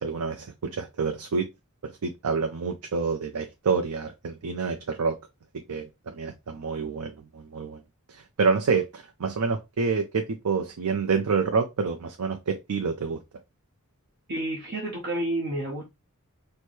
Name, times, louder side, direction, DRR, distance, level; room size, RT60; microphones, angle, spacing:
voice 1, 0.0-1.4 2.0-5.2 5.7-7.8 8.1-13.2, right 5 dB, 90° right, 0.5 m, -28 dB
voice 2, 14.3-15.9, right 1 dB, 50° right, 0.9 m, -30 dB
4.4 x 2.1 x 3.1 m
head